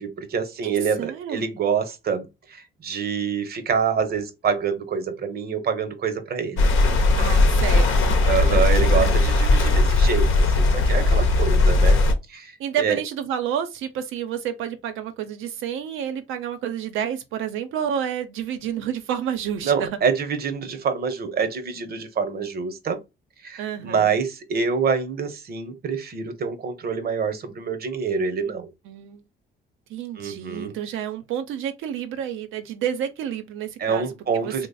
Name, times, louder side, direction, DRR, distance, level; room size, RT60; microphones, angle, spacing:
voice 1, 0.0-6.7 8.2-12.0 12.3-12.5 12.8-13.0 19.6-23.0 23.4-28.7 30.2-30.8 33.8-34.7, right 6 dB, 50° right, 0.8 m, -26 dB
voice 2, 0.6-1.4 7.2-8.2 8.5-9.1 12.6-19.9 23.6-24.2 28.9-29.2 29.9-34.1 34.3-34.7, right 9 dB, 90° right, 0.6 m, -30 dB
sound 1, 6.6-12.1, left 2 dB, 85° left, 0.7 m, -18 dB
3.1 x 2.0 x 4.0 m
cardioid pair, 90°, 20 cm